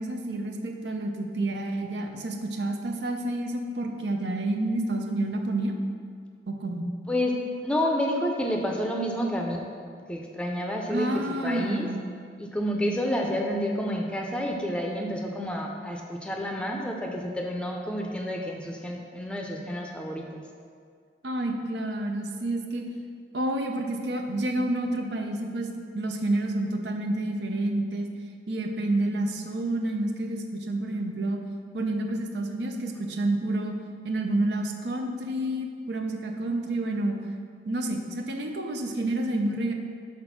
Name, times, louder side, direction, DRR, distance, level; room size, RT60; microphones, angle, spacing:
voice 1, 0.0-5.7 6.5-6.9 10.9-12.0 21.2-22.9 23.3-25.7 25.9-28.1 28.5-31.4 31.7-33.7 34.0-37.1 37.6-39.7, right 1 dB, 80° right, 3 dB, 0.7 m, -29 dB
voice 2, 7.1-9.6 10.1-11.9 12.4-20.4, equal, 5° left, 1 dB, 0.5 m, -29 dB
5.9 x 4.3 x 5.9 m, 2.1 s
head